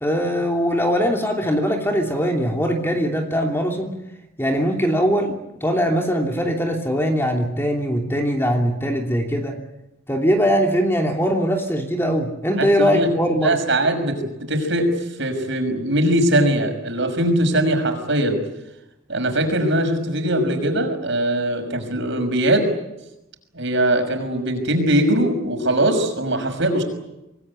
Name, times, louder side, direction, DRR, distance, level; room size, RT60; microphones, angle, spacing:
voice 1, 0.0-3.9 4.4-9.6 10.1-13.6, equal, 10° left, 2 dB, 3.0 m, -21 dB
voice 2, 12.6-13.1 13.4-18.4 19.1-22.7 23.5-26.8, right 1 dB, 55° right, 5 dB, 6.1 m, -21 dB
26.5 x 20.0 x 9.8 m, 0.94 s
head